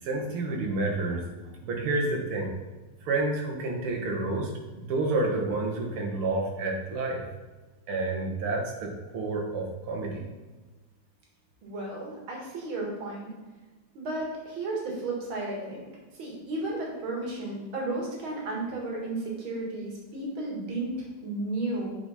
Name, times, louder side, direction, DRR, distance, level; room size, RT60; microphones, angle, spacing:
voice 1, 0.0-1.3 1.6-2.5 3.0-4.5 4.8-7.2 7.9-10.3, right 2 dB, 85° right, 0 dB, 2.3 m, -29 dB
voice 2, 11.6-13.3 13.9-15.9 16.2-21.0 21.2-22.0, right 2 dB, 70° right, -2 dB, 2.6 m, -33 dB
8.6 x 5.1 x 4.2 m, 1.2 s
omnidirectional pair, 2.3 m